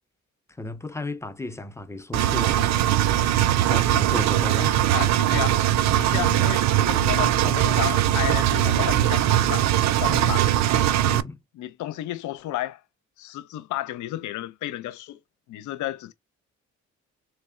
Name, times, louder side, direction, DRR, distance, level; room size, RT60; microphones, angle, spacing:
voice 1, 0.6-2.7 3.7-4.8 6.1-6.5 10.1-10.4 11.0-11.4, left 2 dB, 10° left, 0.5 m, -34 dB
Engine, 2.1-11.2, right 12 dB, 65° right, 0.5 m, -21 dB
voice 2, 4.9-5.6 6.0-9.7 10.0-10.5 11.6-12.8 13.2-15.2 15.5-16.1, left 14 dB, 75° left, 0.6 m, -32 dB
3.3 x 3.2 x 3.6 m
cardioid pair, 90°, 30 cm